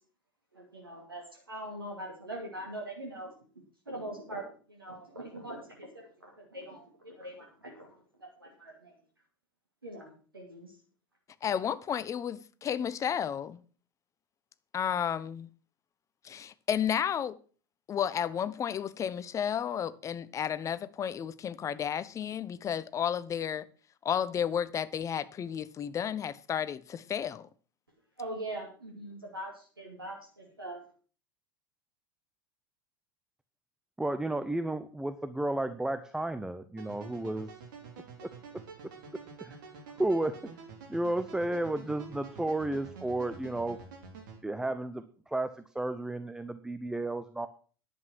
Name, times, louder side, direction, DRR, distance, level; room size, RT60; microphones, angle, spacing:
voice 1, 0.5-3.3 3.9-4.4 4.7-6.1 6.4-7.9 8.2-8.9 9.8-10.7 28.2-30.8, right 1 dB, 85° right, 2.7 m, -42 dB
voice 2, 11.4-13.6 14.7-15.5 16.2-17.4 17.9-23.7 24.0-27.5, left 8 dB, 25° left, 0.8 m, -32 dB
voice 3, 34.0-37.5 39.4-39.6 40.0-40.4 40.9-43.8 44.4-47.5, right 1 dB, 5° right, 0.8 m, -32 dB
sound 1, 36.8-44.4, right 5 dB, 60° right, 3.5 m, -48 dB
11.0 x 8.3 x 6.1 m
figure-of-eight pair, 80°, 12 cm